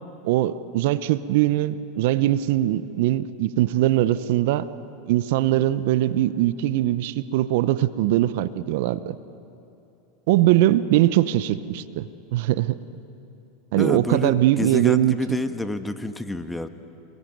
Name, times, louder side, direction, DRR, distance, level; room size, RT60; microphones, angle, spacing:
voice 1, 0.2-4.7 5.1-9.1 10.3-12.8 13.7-15.1, right 14 dB, 65° right, 15 dB, 0.8 m, -21 dB
voice 2, 13.8-16.7, left 2 dB, 10° left, 9 dB, 1.4 m, -28 dB
27.5 x 22.0 x 9.3 m, 2.8 s
hypercardioid pair, 100°, 0 cm